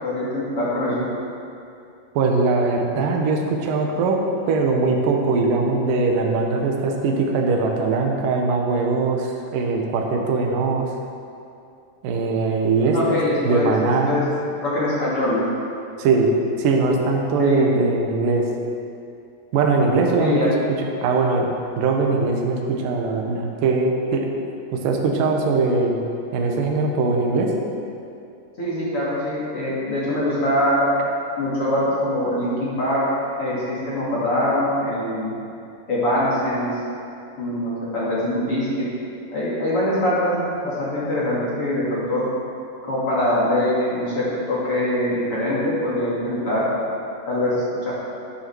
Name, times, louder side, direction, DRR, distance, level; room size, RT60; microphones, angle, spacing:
voice 1, 0.0-1.0 12.9-13.7 14.0-14.2 14.6-15.4 17.4-17.7 20.2-20.5 28.6-30.9 31.4-33.0 33.4-35.3 35.9-36.7 37.4-38.9 39.3-42.2 42.9-46.6 47.3-47.9, left 1 dB, 40° left, -8 dB, 2.8 m, -23 dB
voice 2, 2.1-4.2 4.5-10.9 12.0-14.2 16.0-18.5 19.5-20.5 21.0-21.5 21.8-24.3 24.7-26.0 26.3-27.5, right 3 dB, 65° right, 1 dB, 2.4 m, -21 dB
11.0 x 10.5 x 6.2 m, 2.6 s
omnidirectional pair, 5.1 m